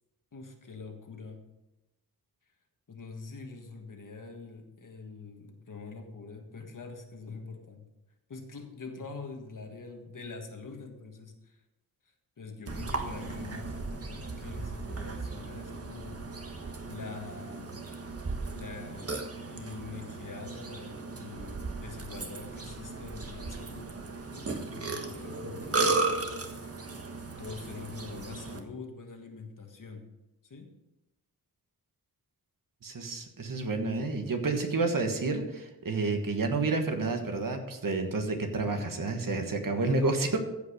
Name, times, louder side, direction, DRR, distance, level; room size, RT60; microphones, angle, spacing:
voice 1, 0.3-1.5 2.9-7.9 8.3-11.6 12.4-16.2 16.9-17.8 18.5-24.0 24.3-25.8 26.9-27.1 27.4-30.1 30.4-30.7 38.8-38.9, left 4 dB, 60° left, 4 dB, 1.6 m, -44 dB
Burping eructation, 12.7-28.6, right 3 dB, 40° right, 1.3 m, -36 dB
voice 2, 32.8-40.4, right 3 dB, 65° right, 5 dB, 1.5 m, -30 dB
15.0 x 5.3 x 5.0 m, 0.96 s
wide cardioid pair, 90°, 36 cm